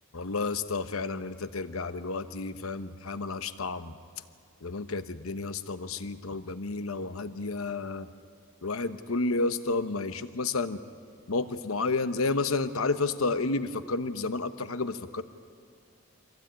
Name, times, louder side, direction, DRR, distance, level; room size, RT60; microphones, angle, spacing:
voice 1, 0.1-3.9 4.6-8.1 8.6-10.8 11.3-15.2, left 3 dB, 85° left, 11 dB, 1.0 m, -31 dB
24.0 x 16.0 x 9.0 m, 2.3 s
head